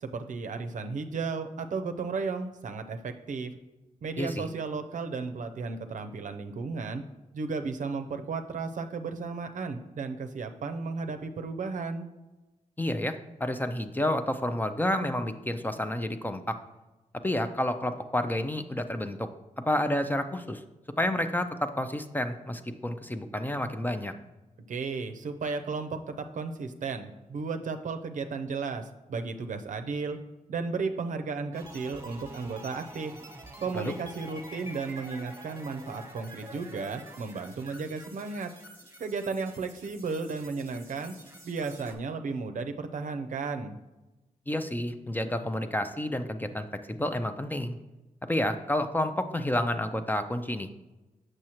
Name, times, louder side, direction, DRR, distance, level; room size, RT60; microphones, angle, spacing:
voice 1, 0.0-3.5 4.0-7.0 7.3-12.1 24.7-30.2 30.5-33.1 33.6-38.5 39.0-41.1 41.4-43.8, right 4 dB, 70° right, 7 dB, 0.5 m, -34 dB
voice 2, 12.8-16.6 17.2-19.3 19.6-20.6 21.0-24.1 33.7-33.9 44.5-47.8 48.3-50.8, left 1 dB, 15° left, 8 dB, 0.4 m, -30 dB
sound 1, 31.5-42.0, right 1 dB, 20° right, 1.2 m, -48 dB
6.4 x 6.2 x 2.9 m, 1.1 s
cardioid pair, 80°, 14 cm